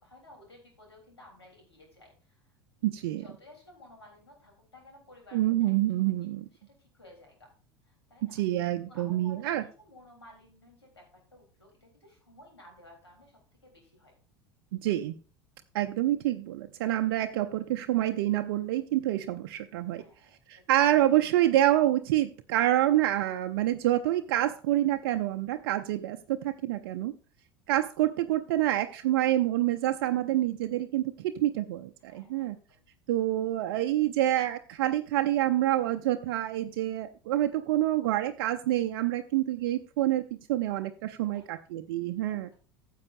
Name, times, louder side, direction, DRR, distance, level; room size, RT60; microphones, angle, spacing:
voice 1, 0.0-2.5 3.0-5.7 6.0-6.3 6.9-7.5 7.9-8.4 8.8-9.5 9.8-11.0 11.3-14.1 19.9-20.6 32.1-32.8 41.3-41.6 42.3-42.5, left 1 dB, 80° left, 1 dB, 3.7 m, -55 dB
voice 2, 2.8-3.2 5.3-6.5 8.2-9.6 14.8-15.1 15.7-20.0 20.5-27.1 27.7-32.6 33.1-40.2 40.5-42.5, right 14 dB, 55° right, 7 dB, 0.6 m, -27 dB
15.0 x 7.6 x 2.6 m, 0.38 s
figure-of-eight pair, 75°, 14 cm